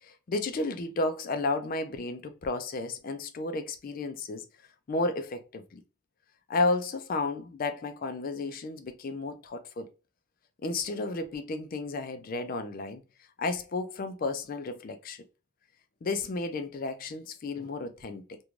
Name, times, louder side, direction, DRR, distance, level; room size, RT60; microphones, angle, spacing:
voice 1, 0.0-4.5 4.9-5.8 6.5-9.9 10.6-13.0 13.4-15.2 16.0-18.4, left 3 dB, 40° left, 0.3 m, -32 dB
2.5 x 2.2 x 3.0 m
head